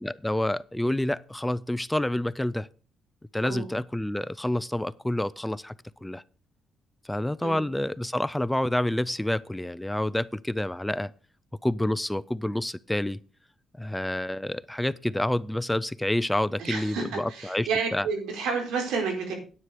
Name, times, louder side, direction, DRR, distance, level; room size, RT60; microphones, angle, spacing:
voice 1, 0.0-2.7 3.3-5.7 6.0-6.2 7.0-11.1 11.6-13.2 13.8-18.1, left 1 dB, 5° left, 0.4 m, -28 dB
voice 2, 16.6-19.3, right 5 dB, 85° right, 4.3 m, -30 dB
9.7 x 9.1 x 5.0 m
cardioid pair, 90°, 0 cm